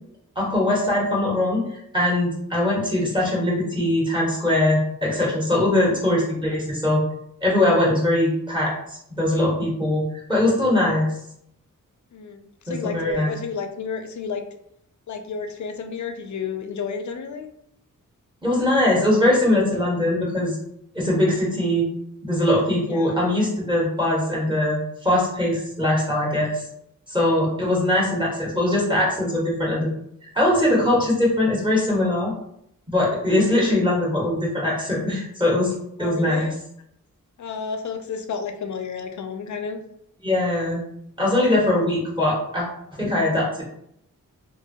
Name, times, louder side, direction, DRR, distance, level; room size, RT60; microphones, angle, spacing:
voice 1, 0.3-7.0 7.4-8.7 9.1-11.1 12.7-13.3 18.4-20.6 20.9-21.9 22.2-26.6 27.1-29.9 30.3-32.3 32.9-35.7 36.0-36.5 40.2-40.8 41.2-42.6 43.0-43.6, left 1 dB, 15° right, -5 dB, 1.4 m, -21 dB
voice 2, 12.1-14.4 15.1-17.5 22.9-23.2 36.0-36.6 37.4-39.8 41.5-41.9, left 6 dB, 60° left, 6 dB, 0.5 m, -32 dB
2.7 x 2.6 x 2.7 m, 0.73 s
cardioid pair, 65°, 33 cm